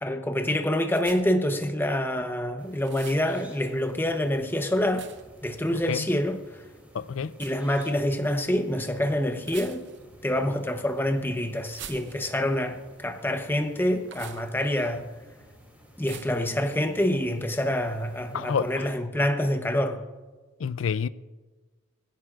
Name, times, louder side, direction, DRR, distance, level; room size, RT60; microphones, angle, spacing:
voice 1, 0.0-5.1 5.4-6.6 7.4-9.9 10.2-15.1 16.0-20.0, left 1 dB, 10° left, 0.8 m, -26 dB
sound 1, 1.0-1.5 2.8-3.3 4.9-5.4 7.3-7.6 9.4-10.1 11.6-12.5 14.1-14.5 16.1-16.5, right 9 dB, 60° right, 0.6 m, -44 dB
sound 2, 2.6-19.0, equal, 10° right, 2.7 m, -53 dB
voice 2, 6.9-7.3 18.3-18.9 20.6-21.1, left 6 dB, 80° left, 0.4 m, -28 dB
21.0 x 16.0 x 2.4 m
head